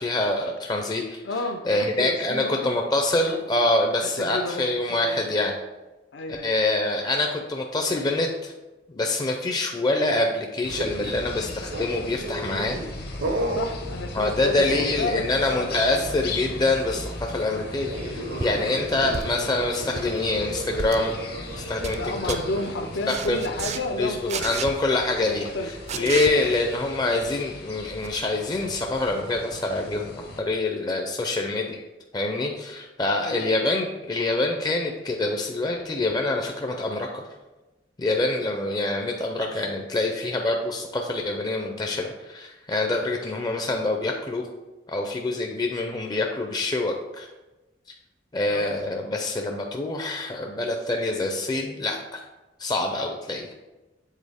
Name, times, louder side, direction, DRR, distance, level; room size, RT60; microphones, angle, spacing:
voice 1, 0.0-1.2 1.6-5.6 6.4-8.5 8.9-12.8 14.1-21.2 21.6-22.0 22.3-22.4 23.1-23.4 24.0-25.5 25.9-31.8 32.1-37.2 38.0-44.5 44.9-47.3 48.3-52.2 52.6-53.5, left 2 dB, 25° left, 2 dB, 0.4 m, -25 dB
voice 2, 1.2-2.7 3.2-3.4 4.0-5.2 6.1-6.5 13.6-16.1 18.6-19.2 22.0-24.5 25.2-26.6 33.2-33.6 48.5-48.7, left 2 dB, 75° left, 5 dB, 0.5 m, -32 dB
sound 1, 10.6-30.4, left 2 dB, 60° left, 0.9 m, -37 dB
sound 2, 10.8-11.3 11.7-12.9 13.2-13.7 14.4-15.3 15.5-15.8 17.9-22.7, right 1 dB, 80° right, 0.8 m, -34 dB
sound 3, 18.4-18.6 19.1-19.5 19.8-20.1 20.8-21.0 21.5-22.0 22.3-22.4 23.1-23.8 24.3-24.7 25.9-26.3 28.0-28.1, right 5 dB, 40° right, 0.4 m, -32 dB
7.4 x 3.9 x 3.5 m, 1.1 s
head